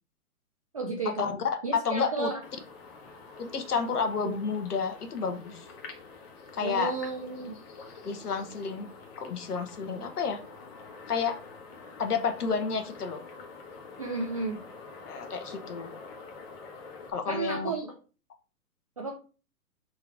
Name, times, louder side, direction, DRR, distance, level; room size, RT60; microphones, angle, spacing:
voice 1, 0.7-1.3 1.6-2.4 4.2-4.3 6.6-7.6 14.0-14.6 17.3-17.9 19.0-19.1, right 4 dB, 25° right, 0 dB, 0.3 m, -33 dB
voice 2, 1.7-2.3 3.4-5.7 6.5-6.9 8.0-8.9 9.2-10.4 11.1-11.4 12.0-13.2 15.0-16.0 17.1-17.7, left 5 dB, 85° left, 7 dB, 1.1 m, -30 dB
sound 1, 2.4-17.1, left 4 dB, 40° left, 1.2 m, -47 dB
3.8 x 2.8 x 4.6 m, 0.36 s
hypercardioid pair, 135°, 44 cm